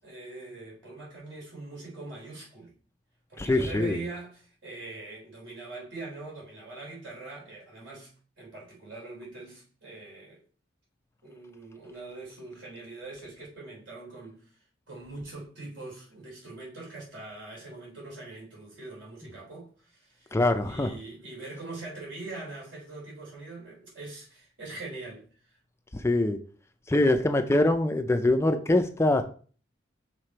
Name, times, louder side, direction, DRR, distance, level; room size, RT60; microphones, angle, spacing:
voice 1, 0.0-2.7 3.3-8.1 8.4-10.4 11.2-14.5 14.9-25.6, right 3 dB, 70° right, 3.6 m, -42 dB
voice 2, 3.4-4.0 20.3-20.9 25.9-26.4 26.9-29.2, left 2 dB, 15° left, 0.4 m, -23 dB
6.6 x 3.7 x 4.4 m
head